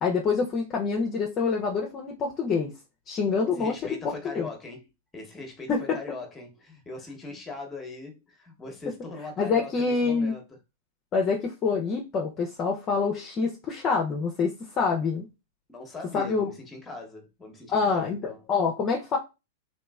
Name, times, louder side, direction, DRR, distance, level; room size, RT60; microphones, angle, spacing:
voice 1, 0.0-2.7 3.1-4.0 4.4-4.5 5.7-5.8 9.4-10.3 11.1-15.3 16.1-16.5 17.7-18.2 18.5-19.2, left 5 dB, 30° left, 0.5 m, -26 dB
voice 2, 3.5-4.8 5.1-10.6 15.7-18.5, left 3 dB, 15° left, 0.9 m, -40 dB
2.9 x 2.6 x 2.3 m
hypercardioid pair, 110°, 0 cm